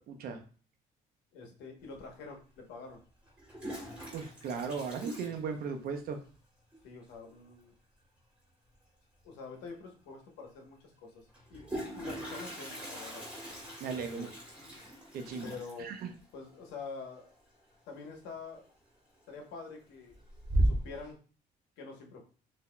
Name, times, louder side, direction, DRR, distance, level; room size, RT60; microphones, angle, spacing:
voice 1, 0.1-0.4 4.1-6.2 13.8-14.3 15.1-16.1, right 5 dB, 60° right, 5 dB, 0.7 m, -37 dB
voice 2, 1.3-3.0 6.8-7.7 9.2-13.2 13.8-14.3 15.4-15.9 16.3-17.3 17.9-18.6 19.3-20.1 20.5-21.2 21.8-22.2, left 4 dB, 90° left, 2 dB, 1.0 m, -46 dB
Toilet flush, 2.0-2.1 3.3-6.1 6.3-6.4 6.7-6.8 7.1-7.5 9.2-9.3 9.7-9.8 11.3-18.0 18.3-18.7 19.2-19.7 20.1-21.1, right 1 dB, 5° right, 1.8 m, -37 dB
5.7 x 2.8 x 2.2 m, 0.40 s
cardioid pair, 110°, 17 cm